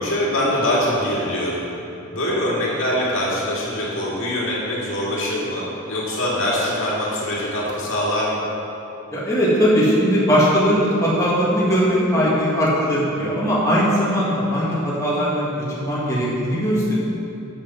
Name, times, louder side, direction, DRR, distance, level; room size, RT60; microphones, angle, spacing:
voice 1, 0.0-1.6 2.1-8.4, left 1 dB, 65° left, -6 dB, 2.1 m, -23 dB
voice 2, 9.1-15.5 15.8-16.9, equal, 15° left, -8 dB, 1.9 m, -19 dB
7.8 x 7.3 x 6.0 m, 2.9 s
head